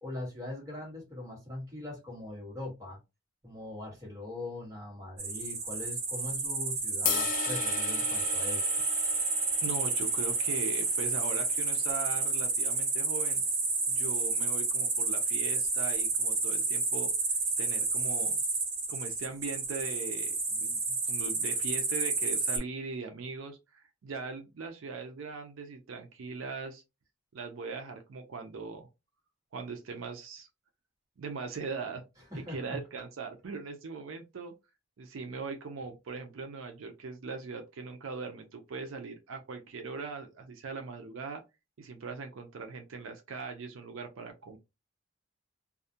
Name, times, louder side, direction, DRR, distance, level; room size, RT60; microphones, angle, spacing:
voice 1, 0.0-3.0 3.4-8.7 32.3-32.8, left 2 dB, 15° right, 1.2 m, -41 dB
sound 1, 5.2-22.6, right 3 dB, 40° right, 1.2 m, -30 dB
sound 2, 7.1-13.3, left 6 dB, 40° left, 0.4 m, -38 dB
voice 2, 9.6-13.4 13.9-17.1 17.6-18.3 18.9-26.8 27.3-28.9 29.5-30.5 31.2-32.0 32.5-34.5 35.0-41.4 41.8-44.6, right 4 dB, 75° right, 0.4 m, -40 dB
2.3 x 2.1 x 2.7 m
head